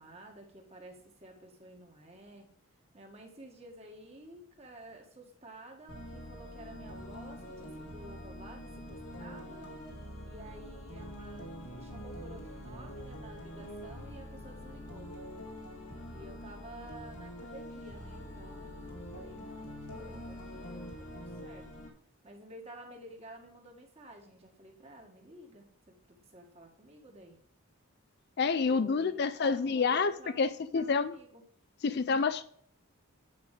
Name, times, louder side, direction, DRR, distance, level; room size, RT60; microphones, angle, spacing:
voice 1, 0.0-2.5 2.9-9.8 10.2-15.1 16.1-21.7 22.2-27.4 28.8-31.4, right 1 dB, 30° right, 1.9 m, -52 dB
sound 1, 5.9-21.9, equal, 85° left, 2.1 m, -45 dB
voice 2, 28.4-30.5 30.7-31.1 31.8-32.4, left 5 dB, 45° left, 0.4 m, -28 dB
9.7 x 5.3 x 5.0 m
head